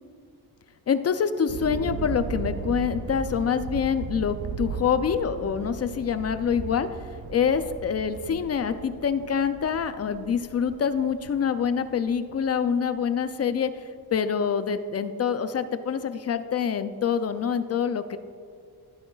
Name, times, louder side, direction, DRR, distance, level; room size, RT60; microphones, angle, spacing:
voice 1, 0.9-6.9 7.3-13.7 14.1-18.2, left 7 dB, 40° left, 10 dB, 0.4 m, -26 dB
sound 1, 1.5-13.0, right 5 dB, 75° right, 0.9 m, -37 dB
13.5 x 9.4 x 2.3 m, 2.3 s
wide cardioid pair, 150°, 38 cm